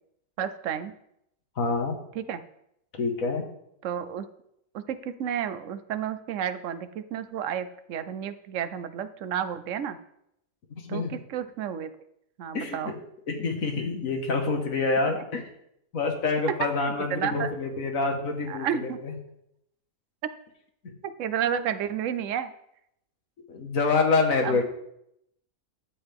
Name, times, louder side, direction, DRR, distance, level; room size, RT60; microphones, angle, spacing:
voice 1, 0.4-0.9 2.1-2.4 3.8-4.3 4.7-10.0 10.9-11.9 12.4-13.0 15.2-15.3 16.8-17.5 18.5-19.0 21.0-22.5 24.4-24.6, right 8 dB, 65° right, 12 dB, 1.0 m, -31 dB
voice 2, 1.6-2.0 3.0-3.5 10.7-11.1 12.5-12.9 13.3-15.4 15.9-19.1 23.5-24.6, left 3 dB, 70° left, 3 dB, 1.9 m, -27 dB
12.0 x 7.8 x 3.5 m, 0.77 s
omnidirectional pair, 1.5 m